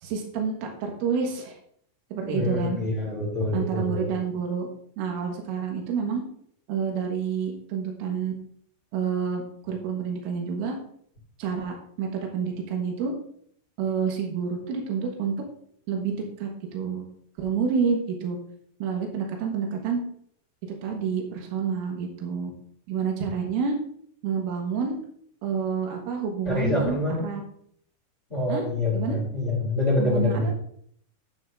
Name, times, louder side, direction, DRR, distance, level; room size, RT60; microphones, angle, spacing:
voice 1, 0.0-1.6 2.1-2.8 3.5-4.7 5.0-6.2 6.7-8.4 8.9-10.8 11.4-13.1 13.8-15.4 15.9-17.1 17.4-18.4 18.8-20.0 20.8-22.5 22.9-23.8 24.2-25.0 25.4-27.4 28.5-28.7 28.9-29.2 30.0-30.5, right 6 dB, 85° right, 1 dB, 4.0 m, -28 dB
voice 2, 2.3-4.1 26.5-27.2 28.3-30.5, left 2 dB, 15° left, -5 dB, 3.5 m, -26 dB
10.5 x 9.2 x 2.6 m, 0.65 s
omnidirectional pair, 5.6 m